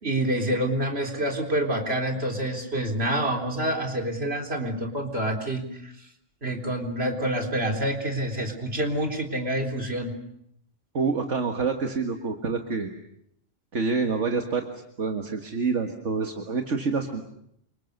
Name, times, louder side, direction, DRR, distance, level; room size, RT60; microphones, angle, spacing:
voice 1, 0.0-5.9 6.4-10.1, right 1 dB, 55° right, 2 dB, 4.1 m, -27 dB
voice 2, 10.9-12.9 13.7-14.6 15.0-17.2, right 4 dB, 70° right, 4 dB, 2.1 m, -27 dB
28.5 x 26.0 x 6.7 m, 0.75 s
omnidirectional pair, 1.3 m